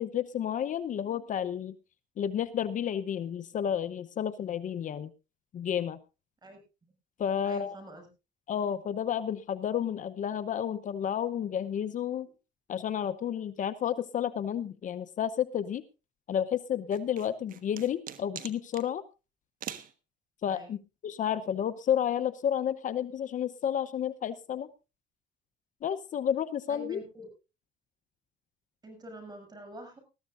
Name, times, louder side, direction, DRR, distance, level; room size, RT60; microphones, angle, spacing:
voice 1, 0.0-1.7 2.2-5.1 5.5-6.0 7.2-7.8 8.5-12.3 12.7-15.8 16.3-19.0 20.4-24.7 25.8-27.0, left 9 dB, 50° left, 13 dB, 0.8 m, -31 dB
voice 2, 7.4-8.1 20.5-20.7 26.7-27.3 28.8-30.0, equal, 25° right, 6 dB, 7.0 m, -46 dB
sound 1, 16.9-18.9 19.6-19.9, right 10 dB, 55° right, 1.4 m, -42 dB
20.0 x 14.0 x 2.5 m, 0.29 s
cardioid pair, 110°, 17 cm